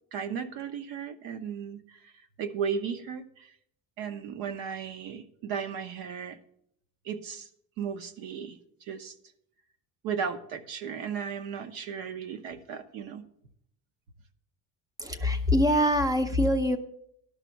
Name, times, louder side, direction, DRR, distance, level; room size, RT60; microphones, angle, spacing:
voice 1, 0.1-2.1 2.4-3.5 4.0-6.4 7.0-7.5 7.8-9.1 10.0-13.2, right 7 dB, 60° right, 10 dB, 1.0 m, -35 dB
voice 2, 15.0-16.8, left 1 dB, 10° right, 10 dB, 0.5 m, -24 dB
11.5 x 6.2 x 5.8 m, 0.70 s
cardioid pair, 165°, 38 cm